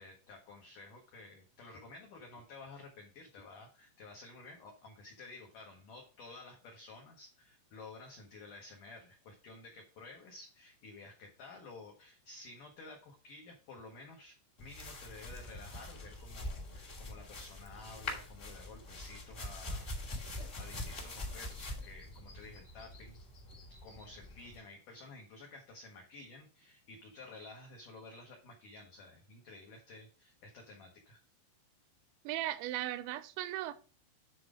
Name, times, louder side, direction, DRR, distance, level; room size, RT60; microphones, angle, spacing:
voice 1, 0.0-19.9 20.3-23.2 23.7-31.2, left 3 dB, 85° left, 1.8 m, -52 dB
sound 1, 14.6-24.6, left 2 dB, 25° left, 1.2 m, -44 dB
voice 2, 32.3-33.7, right 14 dB, 85° right, 2.6 m, -37 dB
9.4 x 4.0 x 4.9 m
omnidirectional pair, 5.7 m